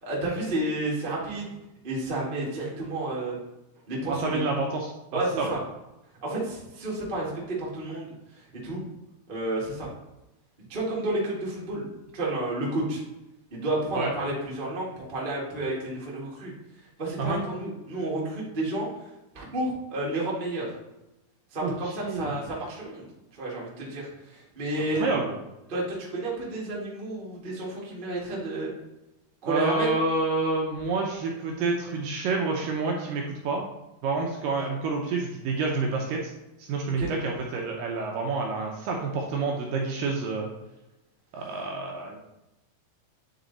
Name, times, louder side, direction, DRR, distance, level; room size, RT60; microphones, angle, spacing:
voice 1, 0.0-1.5 1.8-3.4 3.9-4.4 5.1-5.6 6.2-8.1 8.3-8.8 9.3-9.9 10.7-11.9 12.1-13.0 13.5-16.5 17.0-18.9 19.3-20.7 21.5-23.1 23.4-25.0 25.7-28.7 29.4-29.9 37.0-37.1, right 2 dB, 30° right, -5 dB, 0.9 m, -31 dB
voice 2, 4.1-5.5 13.9-14.1 17.2-17.4 21.6-22.4 24.9-25.4 29.4-33.7 34.0-36.3 36.6-40.5 41.3-42.2, right 3 dB, 75° right, 0 dB, 2.2 m, -28 dB
9.4 x 4.0 x 4.0 m, 0.94 s
omnidirectional pair, 4.5 m